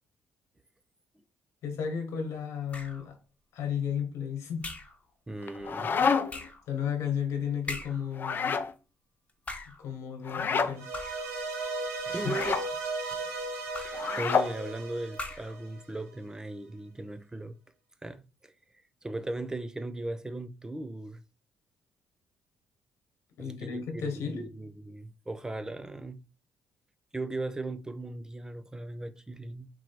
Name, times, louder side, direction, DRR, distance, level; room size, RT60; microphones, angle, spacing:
voice 1, 1.6-3.2 3.5-4.7 6.0-6.1 6.7-8.6 9.7-10.9 12.0-12.3 23.4-24.5, left 7 dB, 75° left, 1.3 m, -34 dB
sound 1, 2.7-3.1 4.6-5.0 6.3-6.7 7.7-8.1 9.3-9.9 10.9-11.3 12.2-12.8 13.7-14.1 15.1-15.6, left 2 dB, 25° left, 1.1 m, -41 dB
voice 2, 5.3-5.9 12.1-12.6 13.8-17.6 18.0-18.5 19.0-21.2 23.4-26.2 27.1-29.7, right 2 dB, 15° right, 0.5 m, -38 dB
sound 2, 5.4-6.5 8.1-8.7 10.2-10.7 12.2-12.7 13.9-14.5, left 5 dB, 45° left, 0.5 m, -28 dB
sound 3, 10.7-16.0, right 3 dB, 90° right, 1.6 m, -36 dB
3.8 x 3.0 x 4.5 m
cardioid pair, 90°, 5 cm